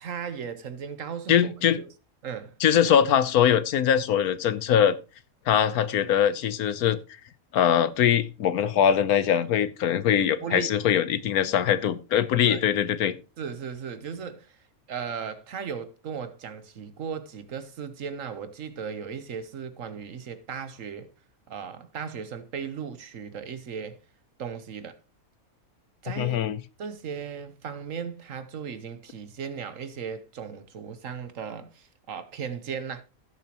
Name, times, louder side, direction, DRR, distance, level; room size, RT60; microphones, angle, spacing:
voice 1, 0.0-1.9 2.2-2.6 10.4-10.7 12.5-12.6 13.4-14.6 14.9-21.1 21.5-24.0 24.4-25.0 26.0-26.4 26.8-33.0, right 7 dB, 65° right, 1.3 m, -36 dB
voice 2, 1.3-1.8 2.6-5.0 5.5-7.0 7.5-13.1 26.2-26.6, left 9 dB, 85° left, 1.3 m, -22 dB
16.5 x 7.1 x 3.0 m
omnidirectional pair, 1.5 m